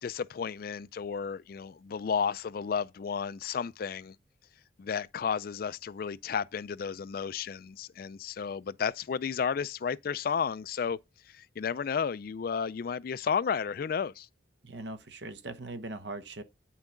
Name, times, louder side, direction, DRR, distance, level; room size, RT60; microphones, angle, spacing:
voice 1, 0.0-4.2 4.8-11.0 11.2-14.3, left 6 dB, 50° left, 0.3 m, -32 dB
voice 2, 14.6-16.4, right 2 dB, 65° right, 1.0 m, -40 dB
9.0 x 5.9 x 3.8 m
head